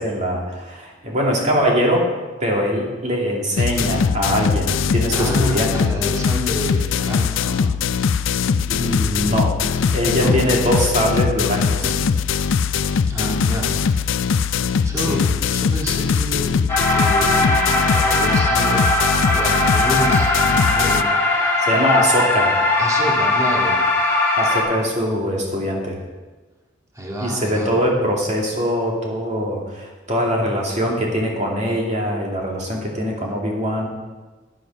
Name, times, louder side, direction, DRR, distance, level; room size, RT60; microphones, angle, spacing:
voice 1, 0.0-2.1 2.4-5.9 8.6-9.6 9.9-11.9 14.7-15.3 21.6-22.5 24.4-26.0 27.2-33.9, equal, 35° right, -2 dB, 2.4 m, -22 dB
sound 1, 3.6-21.0, left 6 dB, 80° left, 0.4 m, -21 dB
voice 2, 5.1-7.7 10.1-10.5 11.8-12.1 13.1-13.7 14.8-16.6 16.9-18.9 19.3-21.1 22.8-23.8 26.9-27.7, equal, 15° right, -3 dB, 2.0 m, -28 dB
sound 2, 16.7-24.6, left 2 dB, 15° left, 2.8 m, -19 dB
9.9 x 9.4 x 6.3 m, 1.3 s
head